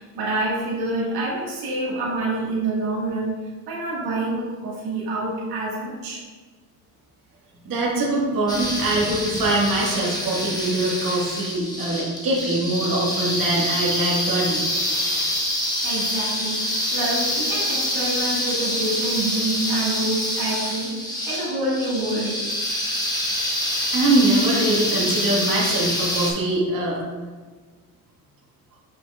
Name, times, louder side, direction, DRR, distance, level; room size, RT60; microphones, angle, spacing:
voice 1, 0.0-3.3 3.7-6.2 15.8-22.4, right 2 dB, 90° right, -5 dB, 1.8 m, -27 dB
voice 2, 7.6-14.6 23.9-27.0, right 2 dB, 65° right, -5 dB, 1.8 m, -23 dB
sound 1, 8.5-26.3, left 1 dB, 10° left, 1.3 m, -26 dB
8.1 x 5.7 x 2.4 m, 1.4 s
cardioid pair, 115°, 37 cm